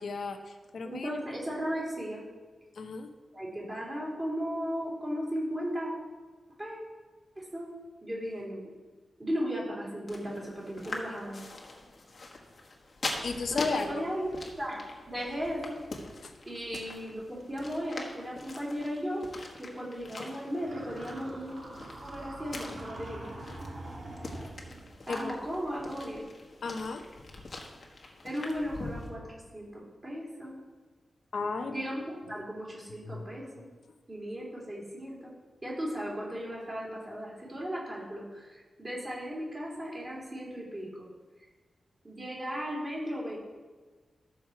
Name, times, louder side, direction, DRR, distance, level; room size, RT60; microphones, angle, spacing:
voice 1, 0.0-1.2 2.8-3.1 13.2-14.0 16.2-16.3 25.1-25.4 26.6-27.1 31.3-31.8 32.3-32.4 33.0-33.2, left 4 dB, 60° left, 5 dB, 1.0 m, -34 dB
voice 2, 0.8-2.2 3.3-5.9 6.6-6.8 7.3-7.7 8.0-8.7 9.2-11.3 13.5-14.3 14.6-15.8 16.5-19.2 19.6-21.6 22.0-23.3 25.1-26.2 28.2-29.2 29.5-30.6 31.7-33.7 34.1-35.3 35.6-41.1 42.0-43.4, equal, 20° right, -5 dB, 2.9 m, -36 dB
sound 1, 10.1-29.1, left 2 dB, 40° left, 1.4 m, -43 dB
sound 2, 20.6-25.0, right 2 dB, 45° right, 1.9 m, -44 dB
13.5 x 6.3 x 4.6 m, 1.3 s
wide cardioid pair, 180°, 0 cm